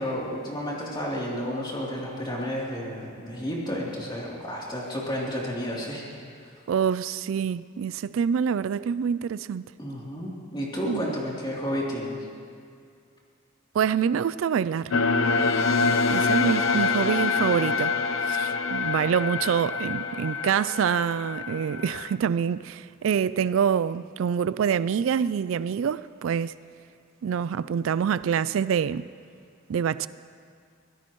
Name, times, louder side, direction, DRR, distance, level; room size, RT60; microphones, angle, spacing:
voice 1, 0.0-6.0 9.8-12.2, equal, 25° left, 3.1 m, -31 dB
voice 2, 6.7-9.6 10.9-11.1 13.7-15.0 16.1-18.0 18.2-26.5 27.2-29.0 29.7-30.1, right 7 dB, 70° right, 0.3 m, -26 dB
sound 1, 14.9-22.1, left 4 dB, 80° left, 0.6 m, -26 dB
24.0 x 17.0 x 3.1 m
head